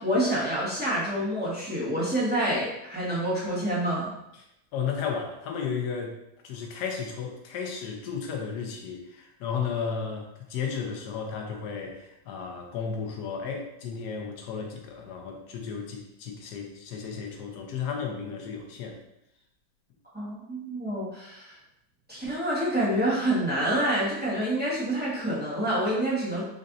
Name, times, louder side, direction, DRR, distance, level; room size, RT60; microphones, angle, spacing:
voice 1, 0.0-4.1 20.1-21.6 22.1-26.4, right 1 dB, 5° right, -9 dB, 0.9 m, -27 dB
voice 2, 4.7-6.2 6.4-19.0, left 6 dB, 70° left, 1 dB, 1.1 m, -34 dB
5.2 x 2.5 x 2.6 m, 0.84 s
omnidirectional pair, 2.1 m